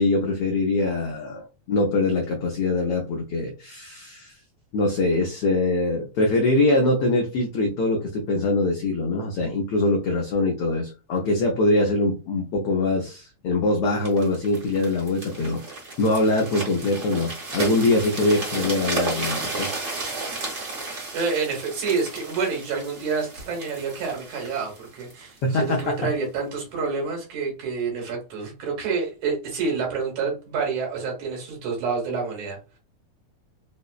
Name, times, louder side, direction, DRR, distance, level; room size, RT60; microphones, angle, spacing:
voice 1, 0.0-4.3 4.7-15.6 16.0-19.7 20.2-20.3 25.4-26.0, left 2 dB, 85° left, 1.2 m, -23 dB
sound 1, 14.0-25.9 26.5-26.7, right 3 dB, 60° right, 0.7 m, -33 dB
voice 2, 21.1-32.6, right 5 dB, 80° right, 2.7 m, -28 dB
5.2 x 2.0 x 2.4 m
omnidirectional pair, 3.3 m